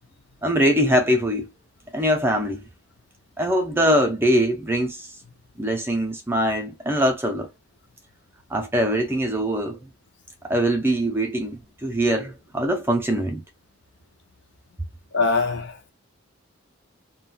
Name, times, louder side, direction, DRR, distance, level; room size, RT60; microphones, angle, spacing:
voice 1, 0.4-1.5 1.9-2.6 3.4-5.1 5.6-7.5 8.5-9.8 10.5-13.4, equal, 10° right, 0.5 m, -22 dB
voice 2, 15.1-15.9, left 3 dB, 55° left, 0.6 m, -23 dB
2.4 x 2.2 x 3.8 m
head